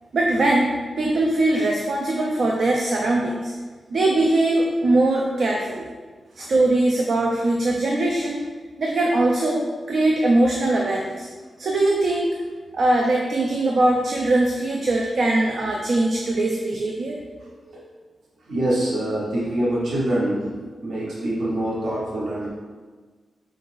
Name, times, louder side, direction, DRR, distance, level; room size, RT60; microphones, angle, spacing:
voice 1, 0.1-3.5 3.9-5.8 6.4-8.4 8.8-11.3 11.6-12.4 12.7-17.2, right 2 dB, 55° right, -1 dB, 0.4 m, -21 dB
voice 2, 17.4-17.8 18.5-20.5 20.8-22.5, right 1 dB, 85° right, -7 dB, 1.0 m, -25 dB
4.8 x 3.8 x 2.5 m, 1.4 s
wide cardioid pair, 165°, 0 cm